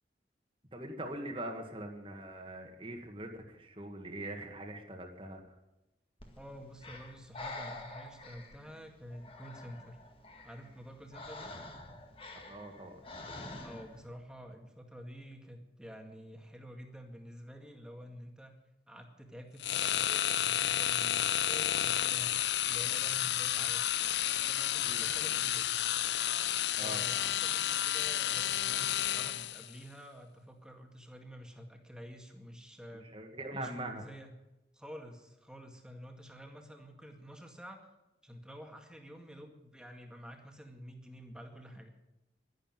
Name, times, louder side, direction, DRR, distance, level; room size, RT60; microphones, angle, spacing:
voice 1, 0.7-5.4 12.5-13.0 24.8-25.0 26.8-27.0 33.1-34.0, right 1 dB, 30° right, 3 dB, 1.9 m, -42 dB
Breathing, 6.2-14.1, left 2 dB, 30° left, 2.0 m, -48 dB
voice 2, 6.4-10.0 10.4-11.5 13.6-18.5 18.9-23.8 24.4-25.8 26.7-33.1 33.5-34.3 34.7-37.8 38.2-41.9, equal, 5° right, 3 dB, 2.0 m, -49 dB
sound 1, 19.6-29.7, left 12 dB, 80° left, 0.6 m, -31 dB
12.0 x 11.5 x 9.1 m, 0.96 s
head